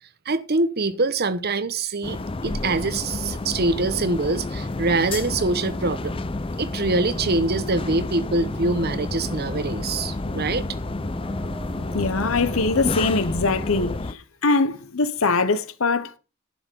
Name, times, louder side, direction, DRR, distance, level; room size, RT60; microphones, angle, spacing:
voice 1, 0.3-2.2 2.4-6.2 6.6-10.7, right 3 dB, 45° right, 0.9 m, -24 dB
sound 1, 2.0-14.1, left 2 dB, 25° left, 0.5 m, -30 dB
sound 2, 5.2-14.0, equal, 5° left, 1.8 m, -37 dB
voice 2, 11.9-16.2, left 3 dB, 65° left, 0.9 m, -23 dB
11.0 x 6.7 x 5.3 m
head